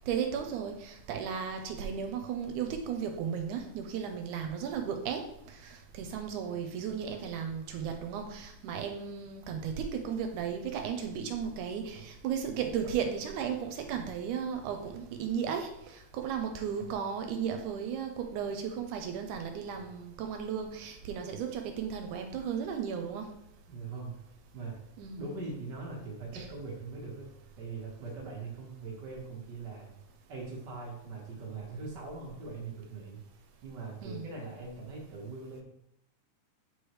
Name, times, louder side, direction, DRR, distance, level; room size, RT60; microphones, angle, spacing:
voice 1, 0.1-23.3 25.0-25.3 26.3-26.5 34.0-34.3, right 7 dB, 80° right, 5 dB, 2.0 m, -35 dB
voice 2, 23.7-24.3 24.5-24.8 25.1-27.3 27.6-29.9 30.3-33.2 33.6-35.6, right 4 dB, 65° right, -3 dB, 1.1 m, -41 dB
8.4 x 4.8 x 3.1 m, 0.79 s
omnidirectional pair, 3.8 m